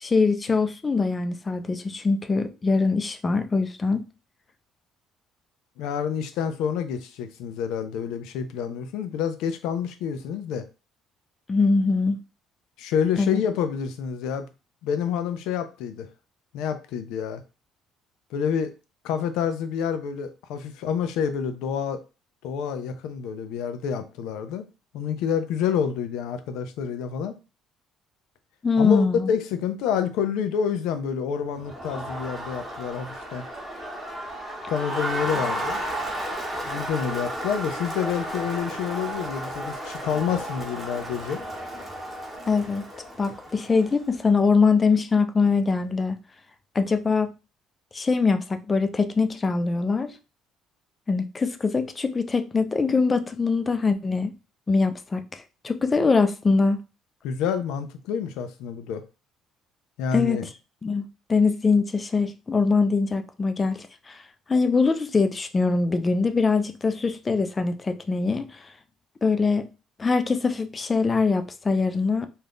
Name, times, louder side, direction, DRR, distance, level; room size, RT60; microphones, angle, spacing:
voice 1, 0.0-4.0 11.5-12.2 13.2-13.4 28.6-29.3 42.5-42.8 43.2-46.2 46.8-47.3 47.9-50.1 51.1-54.3 54.7-56.8 60.1-60.4 60.8-64.2 64.5-68.7 69.2-69.7 70.0-72.3, left 4 dB, 20° left, 0.3 m, -23 dB
voice 2, 5.8-10.6 12.8-14.5 14.8-16.1 16.5-17.4 18.3-18.7 19.0-22.0 22.4-24.7 24.9-27.4 28.8-33.4 34.7-35.8 36.7-41.4 57.2-59.0 60.0-60.5, left 7 dB, 85° left, 0.5 m, -28 dB
Crowd, 31.6-44.1, right 1 dB, 10° right, 0.8 m, -33 dB
2.6 x 2.3 x 3.4 m
cardioid pair, 145°, 0 cm